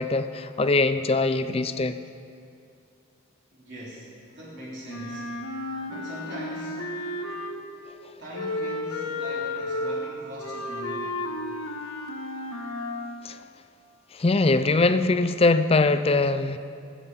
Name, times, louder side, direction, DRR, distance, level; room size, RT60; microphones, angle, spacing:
voice 1, 0.0-1.9 13.2-13.4 14.1-16.6, left 3 dB, 25° left, 11 dB, 0.4 m, -22 dB
voice 2, 3.5-5.3 5.9-6.9 8.2-11.3, equal, 55° right, -7 dB, 3.7 m, -41 dB
Wind instrument woodwind instrument, 4.9-7.8 8.3-13.2, left 1 dB, 80° left, 1.4 m, -33 dB
20.5 x 8.5 x 5.6 m, 2.4 s
head